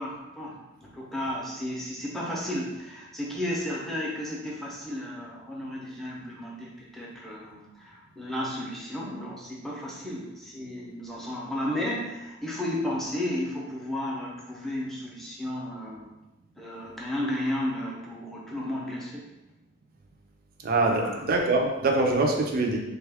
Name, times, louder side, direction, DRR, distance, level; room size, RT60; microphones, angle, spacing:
voice 1, 0.0-16.1 16.6-19.3 21.0-21.2, left 1 dB, ahead, -5 dB, 0.6 m, -33 dB
voice 2, 20.6-22.8, right 2 dB, 45° right, 1 dB, 0.5 m, -24 dB
3.5 x 2.3 x 3.4 m, 1.0 s
head